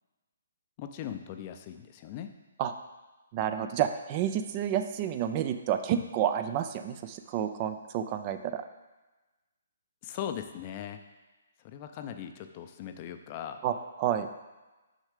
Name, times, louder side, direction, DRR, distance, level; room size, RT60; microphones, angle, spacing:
voice 1, 0.8-2.3 10.0-11.0 11.6-13.6, left 9 dB, 35° left, 7 dB, 0.6 m, -39 dB
voice 2, 3.3-8.6 13.6-14.3, right 10 dB, 35° right, 8 dB, 0.5 m, -30 dB
6.4 x 5.4 x 5.0 m, 1.1 s
hypercardioid pair, 140°, 0 cm